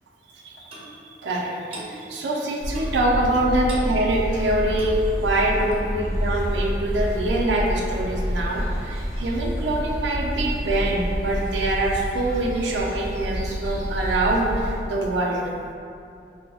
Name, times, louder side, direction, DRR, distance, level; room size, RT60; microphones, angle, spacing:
Clock, 0.7-0.9 1.7-1.9 2.7-3.0 3.7-3.9 4.7-5.0 5.7-5.8, right 2 dB, 30° right, 0.5 m, -39 dB
voice 1, 1.2-15.5, right 1 dB, 85° right, -2 dB, 0.4 m, -24 dB
sound 1, 2.6-14.8, equal, 25° left, 1.3 m, -28 dB
4.8 x 2.0 x 2.3 m, 2.5 s
head